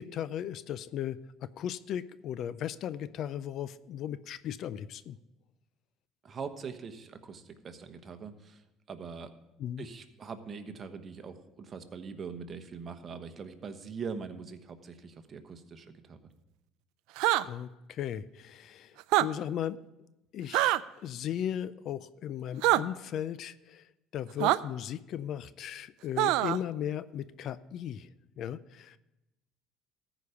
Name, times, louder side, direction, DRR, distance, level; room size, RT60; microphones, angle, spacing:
voice 1, 0.0-5.2 9.6-9.9 17.4-19.8 20.3-28.1 28.4-29.0, left 10 dB, 55° left, 16 dB, 0.4 m, -37 dB
voice 2, 6.2-8.6 8.9-9.3 9.8-16.2, right 5 dB, 40° right, 8 dB, 1.1 m, -42 dB
sound 1, 17.2-17.4 19.0-19.3 20.5-20.8 22.6-22.8 24.4-24.6 26.2-26.6, right 17 dB, 75° right, 0.4 m, -24 dB
14.0 x 5.1 x 6.9 m, 0.95 s
supercardioid pair, 95°, 0 cm